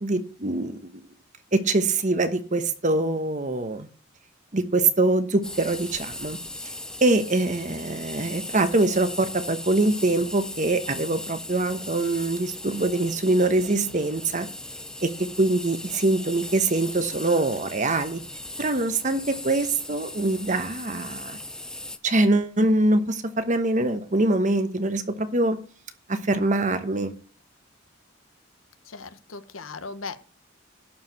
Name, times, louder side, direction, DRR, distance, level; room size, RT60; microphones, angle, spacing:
voice 1, 0.0-1.0 1.5-3.9 4.5-6.4 7.0-14.5 15.0-18.2 18.6-21.4 22.0-25.6 26.1-27.1, right 2 dB, 40° right, 10 dB, 1.1 m, -24 dB
sound 1, 5.4-22.0, left 1 dB, 5° left, 0.5 m, -38 dB
voice 2, 28.8-30.2, left 4 dB, 85° left, 11 dB, 1.0 m, -37 dB
11.5 x 4.8 x 7.9 m, 0.40 s
head